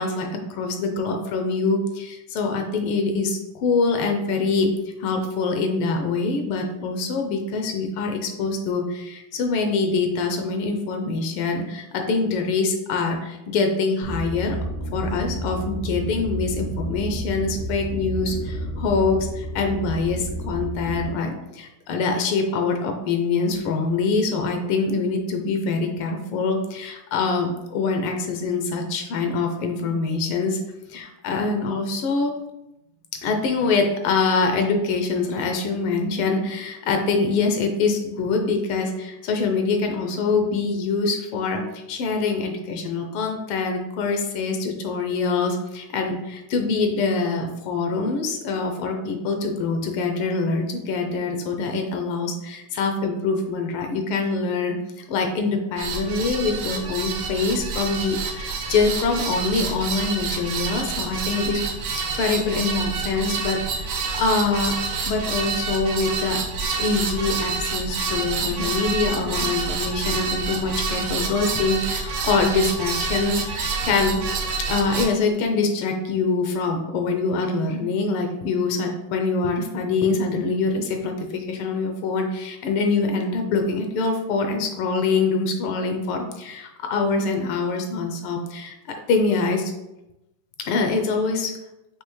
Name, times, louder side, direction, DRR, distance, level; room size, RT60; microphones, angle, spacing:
voice 1, 0.0-4.7 5.0-14.6 14.9-30.6 30.9-32.3 33.2-61.6 61.9-64.8 65.0-66.4 66.8-74.2 74.6-88.8 89.1-89.7 90.6-91.5, left 4 dB, 80° left, 3 dB, 1.5 m, -24 dB
sound 1, 14.0-21.1, right 1 dB, 50° right, 0.7 m, -31 dB
sound 2, 55.8-75.1, right 5 dB, 75° right, 1.5 m, -28 dB
5.4 x 2.8 x 3.1 m, 0.93 s
omnidirectional pair, 2.4 m